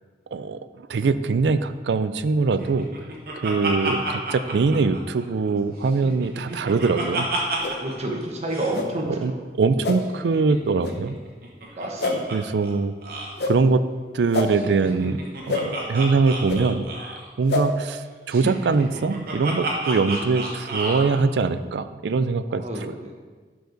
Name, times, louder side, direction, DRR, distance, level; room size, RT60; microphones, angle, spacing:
voice 1, 0.3-2.9 3.4-7.3 9.1-9.3 9.6-11.2 12.3-12.9 13.4-13.8 14.1-15.2 15.5-22.9, right 4 dB, 75° right, 12 dB, 0.4 m, -23 dB
Laughter, 2.6-5.5 5.9-8.0 8.2-8.3 8.5-8.8 10.0-12.4 12.6-12.7 13.0-13.3 14.5-17.3 18.3-21.1, right 2 dB, 55° right, 1.3 m, -31 dB
sound 1, 7.6-7.8 8.7-8.9 9.8-10.0 10.8-10.9 12.0-12.2 13.4-13.5 14.3-14.5 15.5-15.6 16.5-16.6 17.5-17.6, left 3 dB, 65° left, 0.8 m, -25 dB
voice 2, 7.8-9.4 11.8-12.4 22.5-23.1, right 1 dB, 40° right, 0 dB, 1.2 m, -30 dB
11.5 x 4.7 x 4.0 m, 1.5 s
head